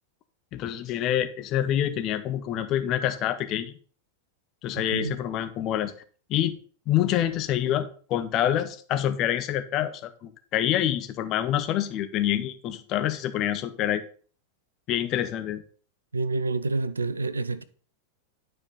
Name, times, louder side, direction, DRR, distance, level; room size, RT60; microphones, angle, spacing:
voice 1, 0.5-3.7 4.6-5.9 6.3-6.6 6.9-14.0 14.9-15.6, left 11 dB, 35° left, 0.8 m, -26 dB
voice 2, 16.1-17.6, right 3 dB, 75° right, 0.4 m, -28 dB
9.9 x 4.8 x 3.9 m
figure-of-eight pair, 90°, 0 cm